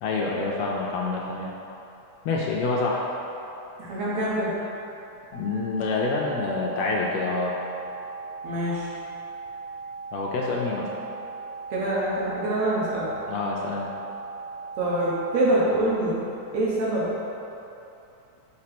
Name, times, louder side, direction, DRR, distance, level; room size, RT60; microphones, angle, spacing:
voice 1, 0.0-1.5 2.2-3.0 5.3-7.6 10.1-10.9 13.3-13.9, left 3 dB, 85° left, -2 dB, 1.5 m, -27 dB
voice 2, 3.8-4.5 8.4-8.9 11.7-13.1 14.8-16.1 16.5-17.3, right 1 dB, 65° right, -6 dB, 2.1 m, -25 dB
sound 1, 5.3-15.3, right 4 dB, 35° right, 1.1 m, -38 dB
4.8 x 4.3 x 5.9 m, 2.9 s
omnidirectional pair, 3.6 m